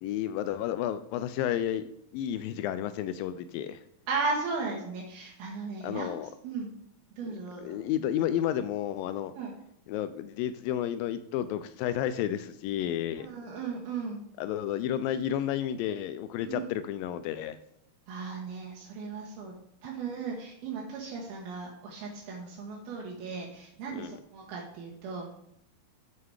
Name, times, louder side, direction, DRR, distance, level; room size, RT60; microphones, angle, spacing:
voice 1, 0.0-3.8 5.8-6.3 7.6-9.3 9.9-13.3 14.4-17.6 23.9-24.1, left 11 dB, 80° left, 12 dB, 2.2 m, -31 dB
voice 2, 4.1-6.7 7.2-7.8 9.3-9.5 13.1-14.2 16.4-16.7 18.1-19.5 19.8-25.3, right 4 dB, 90° right, -3 dB, 3.4 m, -36 dB
8.0 x 7.7 x 4.8 m, 0.77 s
omnidirectional pair, 4.2 m